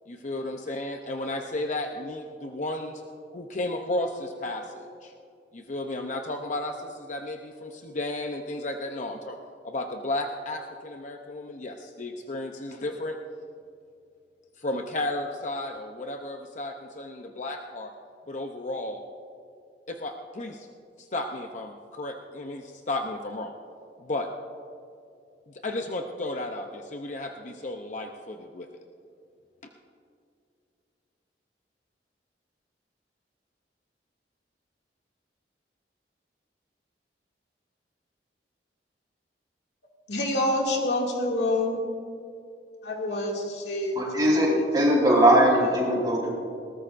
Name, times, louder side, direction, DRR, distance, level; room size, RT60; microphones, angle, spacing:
voice 1, 0.1-3.0 3.3-5.1 5.5-9.4 9.6-13.2 14.6-17.9 18.3-19.0 19.9-20.7 21.0-23.5 24.0-24.3 25.5-28.7, left 2 dB, 45° left, 4 dB, 0.7 m, -33 dB
voice 2, 40.1-41.8 42.8-44.7 45.6-45.7, left 1 dB, 75° left, -1 dB, 2.3 m, -27 dB
voice 3, 43.9-46.3, right 1 dB, 25° right, -4 dB, 4.4 m, -20 dB
20.5 x 18.0 x 2.6 m, 2.5 s
head